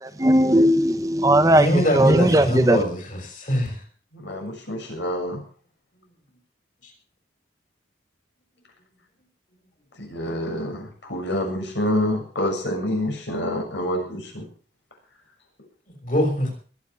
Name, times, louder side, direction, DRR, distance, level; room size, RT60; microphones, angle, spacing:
voice 1, 0.0-2.8, right 1 dB, 20° right, 9 dB, 0.9 m, -18 dB
voice 2, 1.5-3.8 15.9-16.5, equal, 45° left, 3 dB, 6.0 m, -23 dB
voice 3, 4.1-5.4 10.0-14.4, left 1 dB, 80° left, 2 dB, 7.1 m, -27 dB
21.0 x 8.8 x 6.3 m, 0.43 s
head